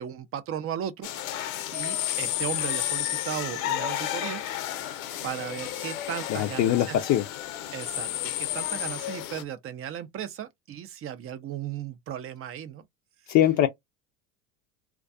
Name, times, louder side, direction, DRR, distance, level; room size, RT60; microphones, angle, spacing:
voice 1, 0.0-1.4 1.7-4.4 4.8-7.0 7.7-12.8, right 9 dB, 35° right, 0.5 m, -36 dB
sound 1, 1.0-9.4, left 13 dB, 80° left, 0.7 m, -32 dB
voice 2, 6.3-7.2 13.3-13.7, left 12 dB, 45° left, 0.5 m, -22 dB
2.3 x 2.3 x 2.5 m
supercardioid pair, 95°, 41 cm